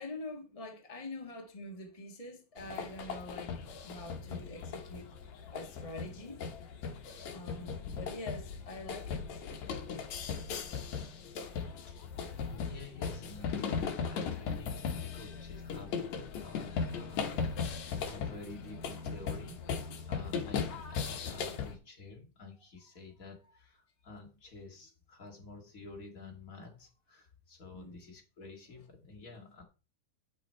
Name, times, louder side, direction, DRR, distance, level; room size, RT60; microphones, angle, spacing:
voice 1, 0.0-5.1 5.5-6.4 7.3-9.4 27.7-28.0, left 2 dB, 50° left, 0.4 m, -45 dB
sound 1, 2.6-21.7, left 6 dB, 65° left, 2.5 m, -38 dB
voice 2, 12.2-19.8 20.1-29.6, left 4 dB, 30° left, 1.9 m, -50 dB
9.8 x 5.9 x 4.5 m
omnidirectional pair, 3.6 m